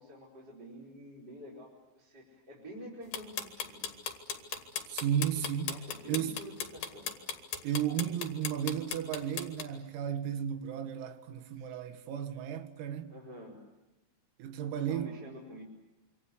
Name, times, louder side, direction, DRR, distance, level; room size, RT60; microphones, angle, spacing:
voice 1, 0.0-3.9 5.7-7.4 11.5-11.7 13.1-13.6 14.7-15.6, equal, 20° right, 4.9 m, -49 dB
sound 1, 3.1-9.6, left 7 dB, 60° left, 3.5 m, -36 dB
voice 2, 4.9-5.8 6.1-6.3 7.6-13.1 14.4-15.1, right 9 dB, 85° right, 4.5 m, -34 dB
26.5 x 26.5 x 8.2 m
omnidirectional pair, 6.0 m